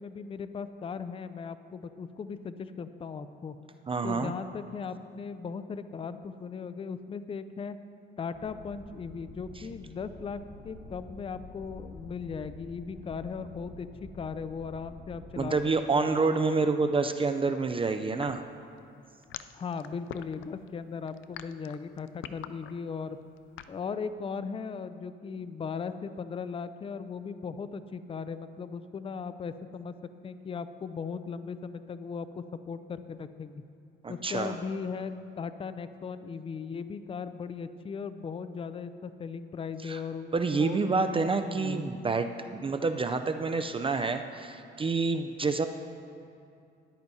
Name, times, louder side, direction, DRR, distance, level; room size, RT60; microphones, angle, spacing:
voice 1, 0.0-3.6 4.0-7.8 8.2-15.6 15.9-16.1 19.5-23.2 23.7-29.9 30.2-33.6 34.1-41.9, left 5 dB, 30° left, 12 dB, 0.4 m, -38 dB
voice 2, 3.9-4.3 15.4-18.4 34.0-34.6 39.8-40.0 40.3-45.7, right 4 dB, 25° right, 7 dB, 0.4 m, -28 dB
sound 1, 8.3-15.6, left 2 dB, 45° left, 1.2 m, -48 dB
sound 2, 18.2-23.8, left 11 dB, 85° left, 0.4 m, -43 dB
13.5 x 11.0 x 2.7 m, 2.5 s
cardioid pair, 90°, 20 cm